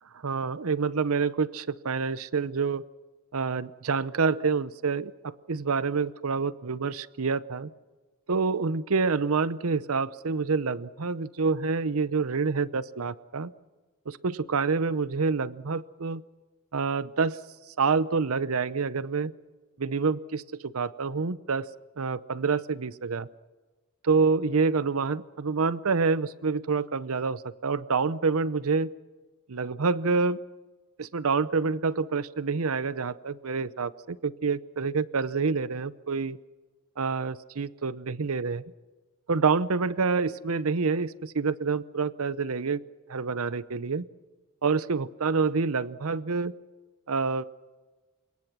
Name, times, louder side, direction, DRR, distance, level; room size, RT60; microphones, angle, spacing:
voice 1, 0.2-2.8 3.3-7.7 8.3-13.5 14.1-16.2 16.7-17.4 17.8-19.3 19.8-21.7 22.0-23.3 24.0-28.9 29.5-30.4 31.0-36.4 37.0-38.6 39.3-42.8 43.1-44.0 44.6-46.5 47.1-47.4, right 4 dB, 80° right, 17 dB, 0.7 m, -27 dB
29.0 x 18.0 x 6.1 m, 1.3 s
head